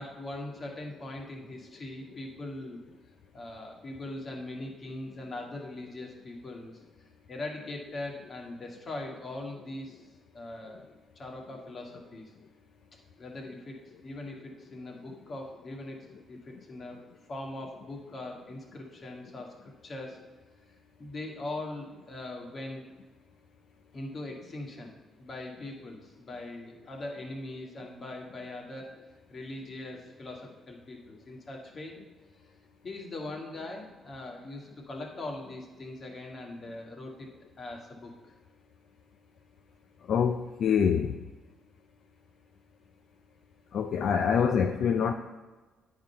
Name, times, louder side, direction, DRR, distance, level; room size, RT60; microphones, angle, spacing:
voice 1, 0.0-2.8 3.3-6.8 7.3-10.0 10.3-10.9 11.2-12.3 13.2-13.8 14.0-20.3 21.0-22.8 23.9-29.0 29.3-32.0 32.8-37.3 37.6-38.3 44.4-44.5, left 2 dB, 40° left, 1 dB, 1.7 m, -41 dB
voice 2, 40.1-41.2 43.7-45.1, left 7 dB, 65° left, 5 dB, 0.4 m, -25 dB
8.9 x 3.8 x 5.6 m, 1.2 s
cardioid pair, 90°, 0 cm